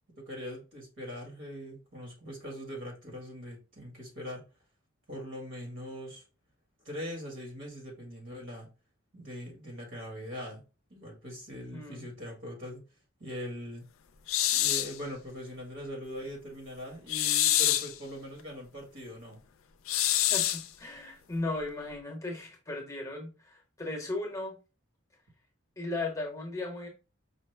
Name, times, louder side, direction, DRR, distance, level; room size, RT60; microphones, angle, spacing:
voice 1, 0.2-4.4 5.1-6.2 6.8-8.7 9.1-10.6 10.9-12.8 13.2-13.8 14.5-19.4, equal, 65° right, 1.6 m, -41 dB
voice 2, 11.7-12.1 20.3-24.6 25.8-26.9, left 2 dB, 15° left, 0.8 m, -36 dB
sound 1, 14.3-15.0 17.1-17.9 19.9-20.7, left 13 dB, 80° left, 0.4 m, -26 dB
5.0 x 2.1 x 3.2 m
head